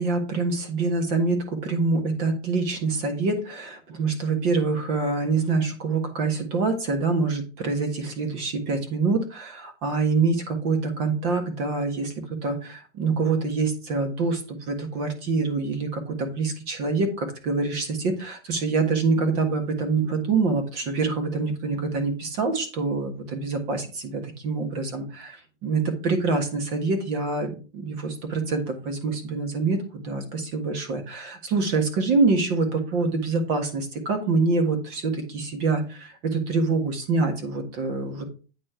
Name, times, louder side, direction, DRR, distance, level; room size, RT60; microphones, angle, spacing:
voice 1, 0.0-25.4 25.6-38.3, right 3 dB, 35° right, 5 dB, 1.6 m, -25 dB
8.8 x 4.4 x 4.4 m, 0.35 s
supercardioid pair, 165°, 36 cm